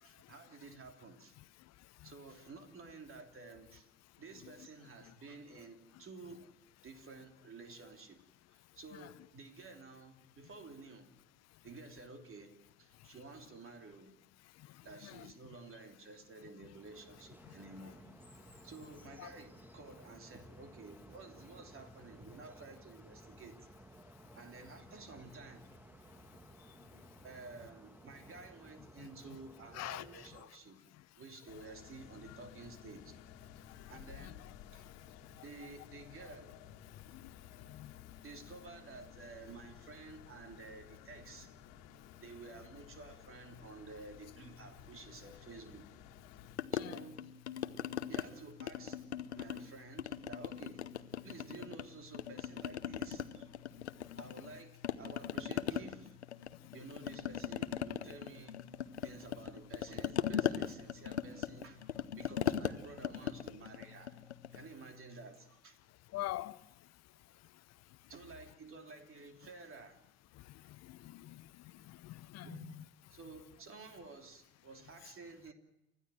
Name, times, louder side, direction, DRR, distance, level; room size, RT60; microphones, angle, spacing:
voice 1, 0.0-1.4 2.0-3.9 4.2-6.6 6.8-8.2 8.5-11.1 11.6-12.5 12.8-14.1 14.8-18.0 18.6-23.7 24.3-25.7 27.2-33.2 33.9-34.4 34.7-34.9 35.4-36.5 38.2-41.5 42.2-45.9 46.7-47.2 48.1-49.0 49.3-50.8 51.2-53.5 54.2-56.2 56.7-58.7 59.0-61.9 62.1-64.2 64.5-65.8 68.1-70.0 72.4-72.7 73.1-75.5, right 3 dB, 40° right, 3.2 m, -52 dB
sound 1, 16.7-30.4, right 1 dB, 5° right, 1.7 m, -57 dB
voice 2, 29.7-30.2 34.2-34.3 37.7-37.9 46.8-47.0 66.1-66.6 70.9-71.4 71.9-72.8, left 16 dB, 50° left, 0.8 m, -43 dB
sound 2, 31.5-46.6, left 9 dB, 70° left, 1.8 m, -55 dB
sound 3, 46.6-48.3 48.6-49.7 50.0-51.8 52.1-54.5 54.8-64.7, left 9 dB, 90° left, 0.8 m, -38 dB
29.5 x 14.0 x 7.7 m
hypercardioid pair, 55°, 32 cm